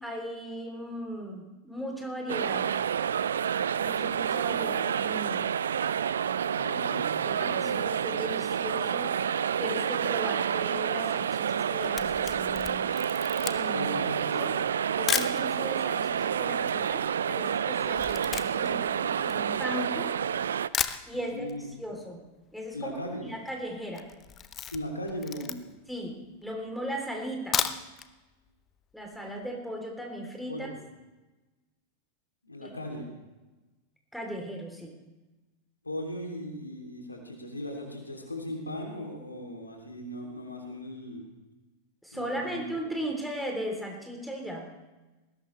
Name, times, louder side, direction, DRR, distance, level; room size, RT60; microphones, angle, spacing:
voice 1, 0.0-2.7 3.8-5.5 7.2-9.2 9.6-12.9 13.4-13.9 14.3-14.6 15.0-20.1 21.1-21.5 21.8-22.2 22.5-22.9 23.3-24.1 25.9-27.6 28.9-30.7 32.6-32.8 34.1-34.9 42.0-44.7, equal, ahead, 1 dB, 3.4 m, -37 dB
sound 1, 2.3-20.7, right 8 dB, 65° right, 0.4 m, -29 dB
voice 2, 6.5-7.1 7.3-7.9 13.7-14.5 21.1-21.7 22.7-23.3 24.7-25.6 30.5-30.7 32.4-33.1 35.8-41.2 42.1-42.6, left 1 dB, 80° left, 1 dB, 3.1 m, -38 dB
Camera, 11.6-15.4 16.1-16.2 16.4-20.1 20.4-20.5 20.7-21.6 21.9-22.0 22.3-22.4 22.5-23.0 23.3-23.5 23.9-25.9 26.4-26.5 27.3-28.1 28.5-28.6 28.9-29.0, left 8 dB, 25° left, 0.9 m, -34 dB
20.0 x 17.5 x 3.3 m, 1.1 s
figure-of-eight pair, 90°, 0 cm